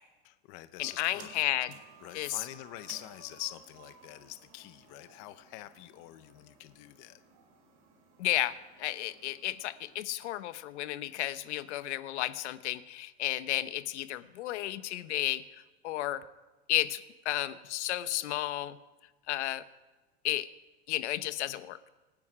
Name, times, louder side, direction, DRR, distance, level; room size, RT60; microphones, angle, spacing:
voice 1, 0.2-1.4 2.0-7.2, left 17 dB, 35° left, 12 dB, 0.6 m, -45 dB
sound 1, 0.8-10.0, right 5 dB, 35° right, 4.2 m, -57 dB
voice 2, 1.0-1.7 2.1-2.5 8.2-16.2 16.7-18.8 19.3-19.6 20.2-20.5 20.9-21.8, left 14 dB, 75° left, 13 dB, 1.0 m, -33 dB
26.0 x 9.6 x 5.0 m, 1.2 s
supercardioid pair, 165°, 35 cm